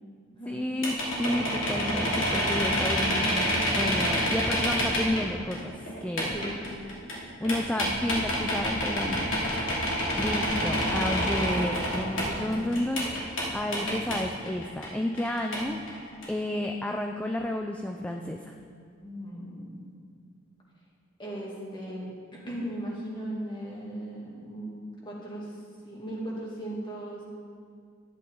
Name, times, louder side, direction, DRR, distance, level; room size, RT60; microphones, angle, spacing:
voice 1, 0.5-6.4 7.4-9.3 10.1-13.1 13.5-15.8 16.3-18.5, left 1 dB, 5° left, 3 dB, 0.4 m, -31 dB
sound 1, 0.8-5.2 5.5-13.5 13.7-14.9 15.2-15.6 15.9-16.3, equal, 80° left, 2.8 m, -28 dB
voice 2, 19.0-19.9 21.2-25.5 25.8-27.2, right 1 dB, 25° left, -5 dB, 2.3 m, -37 dB
11.5 x 10.0 x 3.9 m, 2.2 s
head